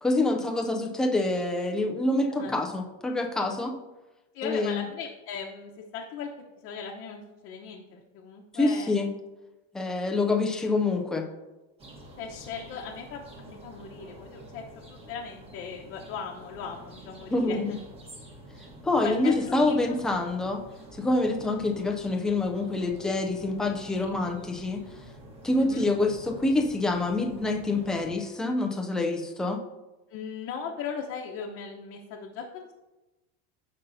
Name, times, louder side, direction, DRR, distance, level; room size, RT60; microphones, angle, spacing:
voice 1, 0.0-3.7 4.4-4.8 8.5-9.1 9.7-11.3 17.3-17.7 18.8-20.6 20.9-24.8 25.4-29.6, left 2 dB, ahead, 2 dB, 0.3 m, -26 dB
voice 2, 4.3-6.3 6.6-8.9 12.2-17.8 19.0-20.0 21.3-21.6 24.1-24.2 25.6-25.9 30.1-32.7, left 6 dB, 40° left, -1 dB, 0.9 m, -38 dB
sound 1, 11.8-28.1, right 1 dB, 20° right, 1.2 m, -48 dB
15.5 x 5.4 x 2.7 m, 1.1 s
supercardioid pair, 165°, 32 cm